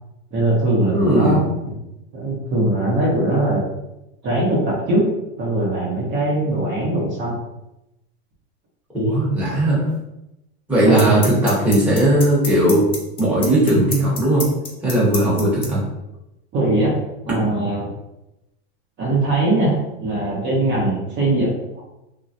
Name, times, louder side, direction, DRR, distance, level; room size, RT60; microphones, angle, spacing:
voice 1, 0.3-1.6 2.1-3.6 4.2-5.0 5.4-7.4 10.9-11.2 16.5-16.9 17.3-17.9 19.0-21.8, right 1 dB, 35° right, -4 dB, 0.8 m, -21 dB
voice 2, 0.9-1.4 8.9-9.8 10.7-12.9 13.2-14.5 14.8-15.8, right 1 dB, 5° right, -8 dB, 0.9 m, -17 dB
sound 1, 9.9-10.0 11.0-15.7, left 4 dB, 20° left, 0.4 m, -27 dB
3.1 x 2.3 x 2.6 m, 0.90 s
supercardioid pair, 140°, 31 cm